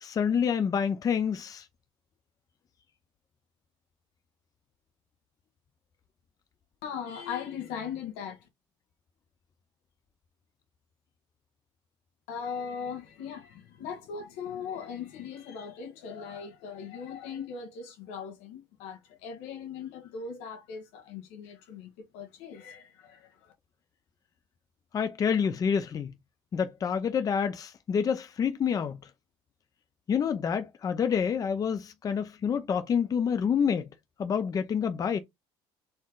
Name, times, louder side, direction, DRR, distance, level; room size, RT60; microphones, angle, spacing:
voice 1, 0.0-1.6 24.9-26.1 26.5-29.0 30.1-33.9 34.2-35.2, left 7 dB, 35° left, 0.7 m, -28 dB
voice 2, 6.8-8.4 12.3-23.5, left 6 dB, 85° left, 1.6 m, -39 dB
4.4 x 3.0 x 3.8 m
cardioid pair, 110°, 11 cm